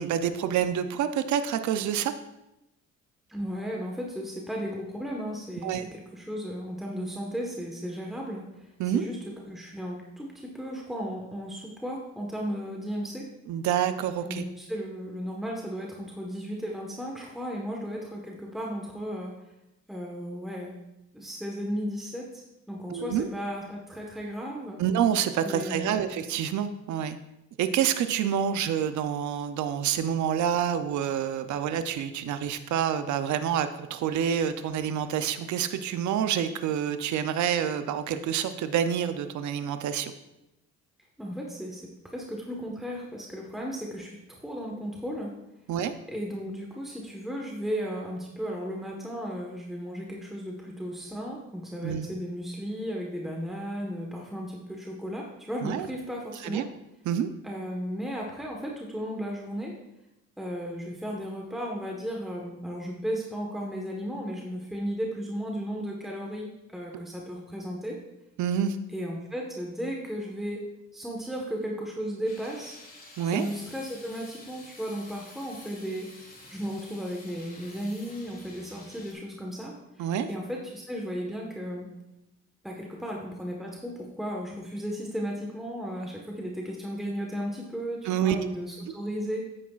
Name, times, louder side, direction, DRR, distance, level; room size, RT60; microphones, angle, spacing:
voice 1, 0.0-2.1 5.6-5.9 8.8-9.1 13.5-14.4 22.9-23.3 24.8-27.2 27.6-40.1 45.7-45.9 51.8-52.1 55.6-55.9 56.4-56.7 57.1-57.3 68.4-68.8 73.2-73.5 80.0-80.3 88.0-88.5, right 9 dB, 70° right, 10 dB, 0.6 m, -27 dB
voice 2, 3.3-13.3 14.2-19.3 19.9-20.8 21.1-24.8 25.4-26.1 41.2-45.3 46.1-56.6 57.4-59.8 60.4-68.0 68.9-70.6 70.9-72.8 73.3-81.9 82.6-89.4, equal, ahead, -1 dB, 1.3 m, -35 dB
sound 1, 72.2-79.1, left 2 dB, 30° left, 2.0 m, -49 dB
9.6 x 8.5 x 2.4 m, 0.90 s
cardioid pair, 90°, 30 cm